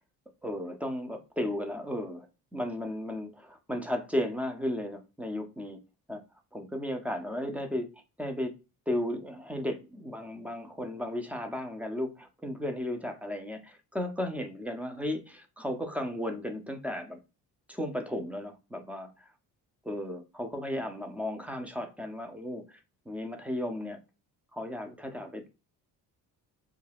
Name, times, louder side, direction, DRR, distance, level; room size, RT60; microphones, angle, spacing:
voice 1, 0.4-2.3 2.5-5.8 6.1-6.2 6.5-7.9 8.2-8.5 8.9-17.2 17.7-19.3 19.9-22.8 23.1-24.0 24.5-25.5, left 1 dB, 5° right, 0.4 m, -34 dB
2.3 x 2.2 x 3.3 m
cardioid pair, 105°, 38 cm